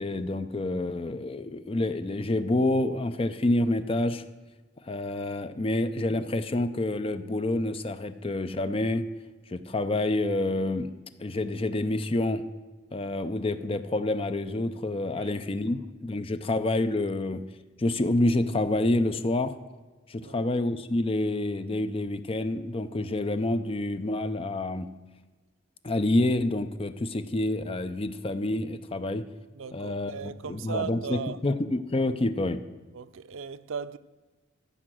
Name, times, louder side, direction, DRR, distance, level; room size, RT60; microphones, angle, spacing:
voice 1, 0.0-4.2 4.8-9.0 9.5-10.9 11.2-12.4 12.9-17.4 17.8-19.6 20.1-24.9 25.8-29.2 29.7-32.6, left 2 dB, 30° left, 0.5 m, -28 dB
voice 2, 20.2-20.5 29.5-31.4 32.9-34.0, right 6 dB, 90° right, 0.5 m, -37 dB
14.5 x 5.1 x 7.7 m
head